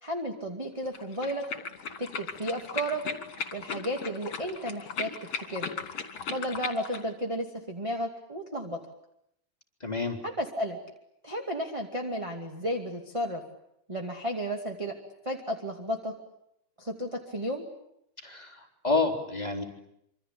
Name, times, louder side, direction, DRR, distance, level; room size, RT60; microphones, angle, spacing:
voice 1, 0.0-1.4 2.0-3.0 3.5-5.7 6.3-8.8 10.2-10.8 11.2-13.4 13.9-15.0 15.2-16.1 16.8-17.6, equal, 10° right, 3 dB, 2.1 m, -33 dB
sound 1, 0.9-7.0, left 6 dB, 45° left, 3.7 m, -37 dB
voice 2, 9.8-10.2 18.2-19.6, left 3 dB, 10° left, 1 dB, 3.8 m, -29 dB
27.0 x 25.5 x 8.7 m, 0.76 s
omnidirectional pair, 3.5 m